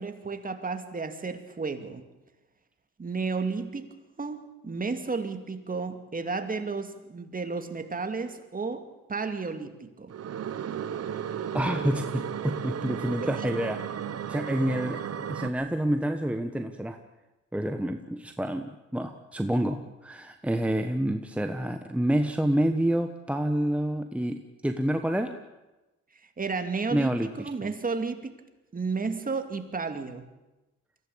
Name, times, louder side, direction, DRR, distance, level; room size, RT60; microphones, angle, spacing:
voice 1, 0.0-2.1 3.0-3.9 4.2-10.1 13.4-13.5 26.4-28.4 28.7-30.3, right 4 dB, 30° right, 7 dB, 2.4 m, -32 dB
sound 1, 10.1-15.5, right 8 dB, 55° right, 1.3 m, -34 dB
voice 2, 11.5-13.8 14.3-15.0 15.3-17.0 17.5-25.3 26.9-27.7, right 1 dB, 5° right, 6 dB, 1.2 m, -28 dB
23.0 x 16.0 x 8.7 m, 1.1 s
cardioid pair, 90°, 30 cm